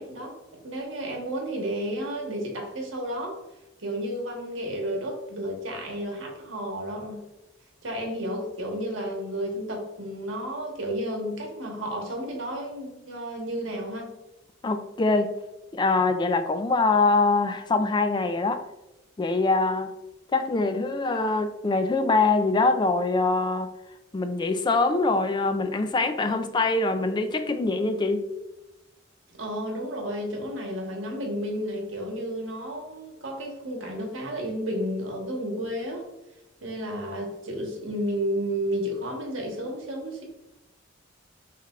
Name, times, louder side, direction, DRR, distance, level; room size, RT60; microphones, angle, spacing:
voice 1, 0.0-3.4 3.8-7.3 7.8-14.1 29.3-36.1 36.6-40.2, equal, 85° right, 1.2 m, -32 dB
voice 2, 14.6-15.4 15.7-18.6 19.2-19.9 20.3-23.7 24.1-28.3, left 3 dB, 25° left, 0.3 m, -24 dB
5.6 x 3.3 x 2.4 m
head